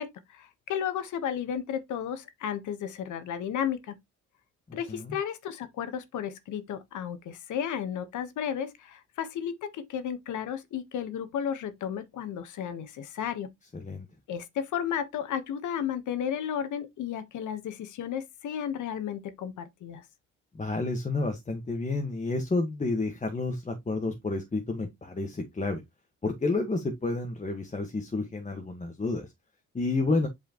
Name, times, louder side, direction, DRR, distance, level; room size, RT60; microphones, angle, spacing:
voice 1, 0.0-4.0 4.7-13.5 14.3-20.0, left 8 dB, 75° left, 1.4 m, -33 dB
voice 2, 20.5-25.8 26.2-29.3 29.7-30.3, left 3 dB, 25° left, 1.6 m, -30 dB
8.1 x 4.8 x 3.1 m
cardioid pair, 90°, 30 cm